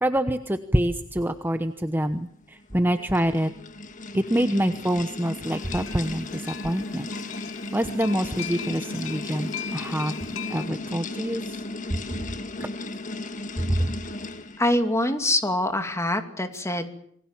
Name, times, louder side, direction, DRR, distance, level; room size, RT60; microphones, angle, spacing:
voice 1, 0.0-3.5 4.1-7.1 7.7-11.6 11.9-12.0 12.6-12.7 13.6-13.9, right 1 dB, 10° right, 9 dB, 1.0 m, -26 dB
sound 1, 2.6-14.8, left 2 dB, 40° left, 1.6 m, -36 dB
sound 2, 5.5-10.7, left 8 dB, 90° left, 2.0 m, -39 dB
voice 2, 14.6-16.9, left 1 dB, 15° left, 7 dB, 2.6 m, -24 dB
28.0 x 20.5 x 7.4 m, 0.67 s
head